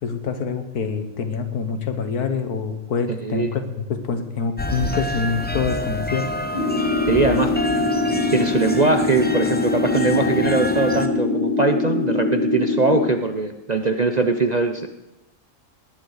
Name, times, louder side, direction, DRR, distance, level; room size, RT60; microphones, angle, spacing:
voice 1, 0.0-6.3, left 5 dB, 80° left, 8 dB, 1.8 m, -25 dB
voice 2, 3.1-3.5 7.1-7.5 8.3-14.9, right 3 dB, 40° right, 7 dB, 0.6 m, -21 dB
sound 1, 4.6-11.1, left 1 dB, 10° left, 0.7 m, -28 dB
sound 2, 6.5-13.1, left 3 dB, 40° left, 2.5 m, -23 dB
18.0 x 10.5 x 4.9 m, 0.95 s
omnidirectional pair, 1.6 m